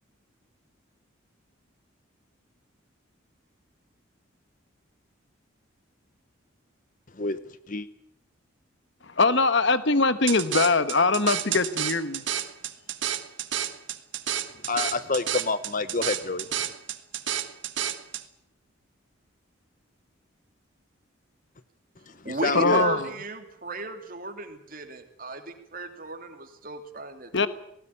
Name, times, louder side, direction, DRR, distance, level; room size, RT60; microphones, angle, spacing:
voice 1, 9.0-12.2 22.5-23.1 27.3-27.5, left 3 dB, 60° left, 13 dB, 1.2 m, -22 dB
sound 1, 10.3-18.2, right 10 dB, 65° right, 1.5 m, -30 dB
voice 2, 14.7-16.5 22.1-22.8, left 3 dB, 40° left, 13 dB, 0.9 m, -28 dB
voice 3, 22.2-27.5, right 3 dB, 40° right, 6 dB, 2.9 m, -35 dB
19.0 x 19.0 x 9.9 m, 0.74 s
head